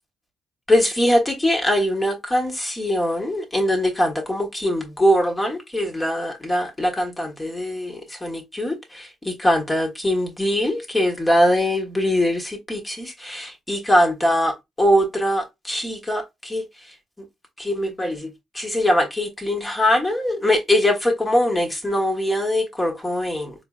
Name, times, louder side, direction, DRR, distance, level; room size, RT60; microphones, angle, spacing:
voice 1, 0.7-16.6 17.6-18.3 18.5-23.5, left 1 dB, 15° left, 1.1 m, -22 dB
4.2 x 3.0 x 2.3 m
cardioid pair, 90°, 0 cm